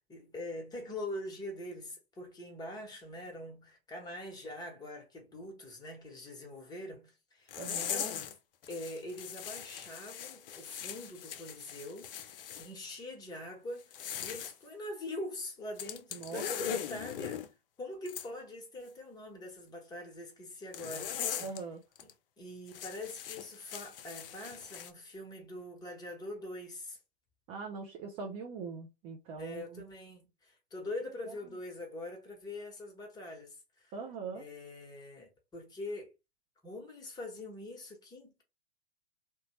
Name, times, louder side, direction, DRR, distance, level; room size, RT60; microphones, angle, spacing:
voice 1, 0.1-8.3 8.7-17.4 17.8-21.6 22.0-22.1 22.4-27.0 29.4-33.9 34.3-36.1 36.6-38.4, left 1 dB, 15° left, 1.0 m, -43 dB
sound 1, 7.5-8.3 8.6-12.7 13.8-14.5 15.8-17.5 18.1-18.3 20.7-21.6 21.9-22.1 22.7-24.9, left 9 dB, 60° left, 0.5 m, -40 dB
voice 2, 7.6-7.9 16.1-16.4 21.4-21.8 27.5-29.8 33.9-34.4, right 4 dB, 20° right, 0.3 m, -42 dB
2.8 x 2.2 x 2.9 m
figure-of-eight pair, 105°, 31 cm